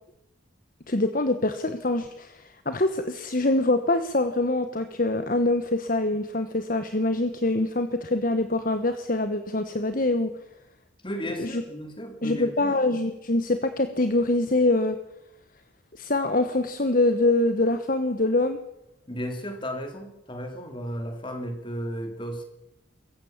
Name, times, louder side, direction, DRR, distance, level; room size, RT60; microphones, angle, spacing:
voice 1, 0.9-10.3 11.4-11.6 12.2-15.0 15.9-18.6, left 2 dB, 40° left, 9 dB, 1.2 m, -24 dB
voice 2, 11.0-12.7 19.1-22.4, equal, 25° left, 5 dB, 3.2 m, -34 dB
24.5 x 15.0 x 7.3 m, 0.88 s
head